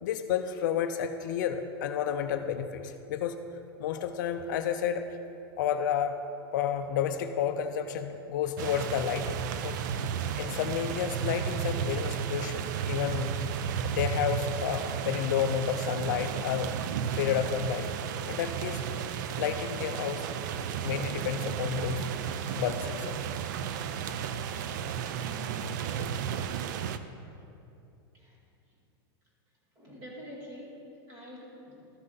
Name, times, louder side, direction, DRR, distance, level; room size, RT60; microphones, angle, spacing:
voice 1, 0.0-3.4 3.8-5.1 5.6-6.1 6.5-9.8 10.4-13.4 13.8-16.8 17.2-17.9 18.3-18.8 19.4-20.2 20.8-22.1 22.5-23.2, left 9 dB, 50° left, 8 dB, 0.4 m, -31 dB
sound 1, 8.6-27.0, right 8 dB, 50° right, 0.4 m, -33 dB
voice 2, 29.8-32.0, equal, 30° right, -3 dB, 2.1 m, -46 dB
13.0 x 7.6 x 3.9 m, 2.7 s
supercardioid pair, 175°, 13 cm